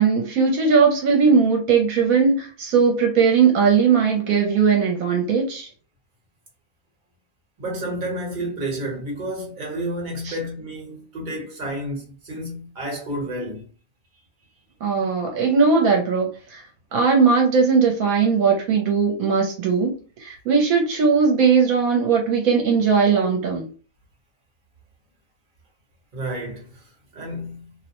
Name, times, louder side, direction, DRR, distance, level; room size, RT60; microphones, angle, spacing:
voice 1, 0.0-5.7 10.3-10.4 14.8-16.6 16.9-19.9 20.2-23.7, right 5 dB, 75° right, 1.1 m, -19 dB
voice 2, 7.6-13.6 26.1-27.7, right 1 dB, 35° right, 1.1 m, -31 dB
2.6 x 2.1 x 2.9 m
omnidirectional pair, 1.6 m